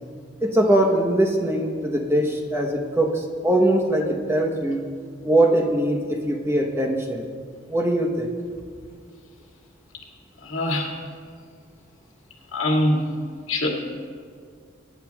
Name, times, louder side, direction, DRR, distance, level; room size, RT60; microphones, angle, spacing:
voice 1, 0.4-4.8 5.2-7.3 7.7-8.3, right 1 dB, 15° right, 1 dB, 1.0 m, -21 dB
voice 2, 10.4-10.9 12.5-13.0 13.5-13.7, left 1 dB, 85° left, -1 dB, 2.1 m, -22 dB
22.5 x 10.5 x 2.3 m, 2.1 s
head